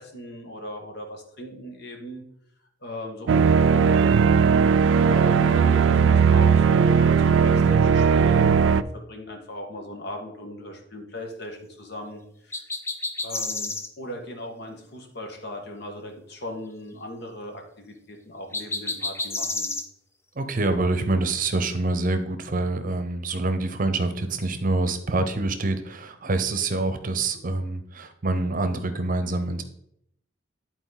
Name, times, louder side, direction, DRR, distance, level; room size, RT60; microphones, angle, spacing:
voice 1, 0.0-2.2 2.8-4.3 5.0-12.6 13.2-19.7, left 1 dB, 60° left, 3 dB, 1.5 m, -38 dB
sound 1, 3.3-8.8, right 6 dB, 85° right, 0.3 m, -18 dB
sound 2, 12.5-13.9 18.5-19.9, left 3 dB, 15° left, 0.5 m, -30 dB
voice 2, 20.4-29.6, right 2 dB, 45° right, 9 dB, 0.8 m, -26 dB
10.5 x 4.4 x 4.0 m, 0.72 s
head